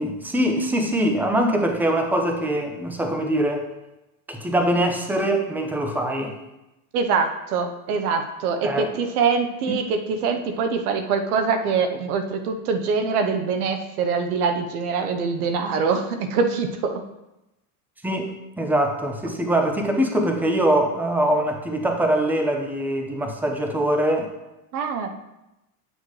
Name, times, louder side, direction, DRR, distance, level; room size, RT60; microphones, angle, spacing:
voice 1, 0.0-3.7 4.3-6.3 8.6-8.9 18.0-24.3, right 1 dB, 5° right, 4 dB, 0.9 m, -23 dB
voice 2, 6.9-17.0 24.7-25.1, right 5 dB, 80° right, 7 dB, 1.0 m, -24 dB
9.1 x 6.4 x 3.2 m, 0.94 s
supercardioid pair, 110°, 44 cm